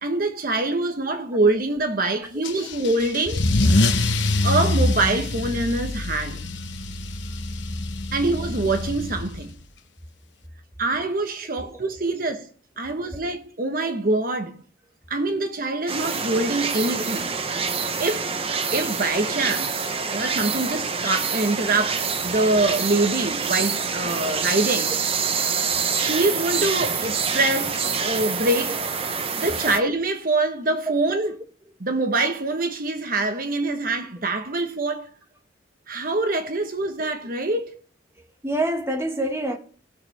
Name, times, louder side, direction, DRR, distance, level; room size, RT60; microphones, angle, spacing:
voice 1, 0.0-3.5 4.4-6.5 8.1-9.5 10.8-12.4 12.8-14.6 15.1-17.3 18.0-18.3 18.7-24.9 25.9-28.8 29.4-31.3 31.8-35.1 35.9-37.7, right 2 dB, 50° right, 1.1 m, -24 dB
Car / Engine starting / Accelerating revving vroom, 2.4-9.6, left 2 dB, 70° left, 1.0 m, -24 dB
sound 1, 15.9-29.8, right 5 dB, 30° right, 0.8 m, -26 dB
voice 2, 38.4-39.6, right 1 dB, 15° right, 1.3 m, -27 dB
19.5 x 6.7 x 3.3 m
head